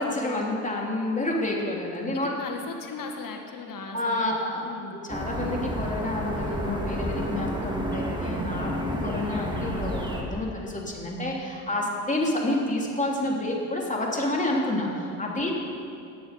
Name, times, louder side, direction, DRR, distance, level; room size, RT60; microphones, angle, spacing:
voice 1, 0.0-2.3 3.9-4.6 5.1-15.5, left 1 dB, 15° left, -2 dB, 3.0 m, -29 dB
voice 2, 2.1-5.0 11.8-12.0 15.4-15.5, left 4 dB, 45° left, 3 dB, 2.0 m, -38 dB
sound 1, 5.1-10.2, equal, 10° right, 2.2 m, -30 dB
18.0 x 7.0 x 5.3 m, 2.5 s
hypercardioid pair, 60°, 44 cm